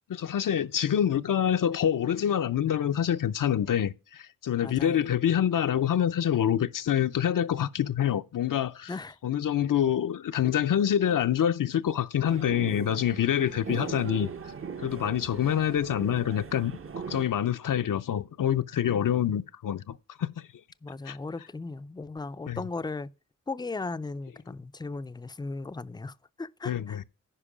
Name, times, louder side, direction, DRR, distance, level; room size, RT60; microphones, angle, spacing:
voice 1, 0.1-8.9 9.2-14.3 14.8-16.7 17.1-20.5 21.1-21.2 22.4-22.6 26.6-27.0, left 9 dB, 75° left, 0.6 m, -26 dB
voice 2, 4.6-5.1 8.9-9.2 20.8-23.1 23.5-27.0, left 3 dB, 15° left, 0.3 m, -37 dB
sound 1, 12.3-17.3, right 6 dB, 40° right, 0.6 m, -39 dB
10.0 x 5.2 x 5.0 m
wide cardioid pair, 95°, 33 cm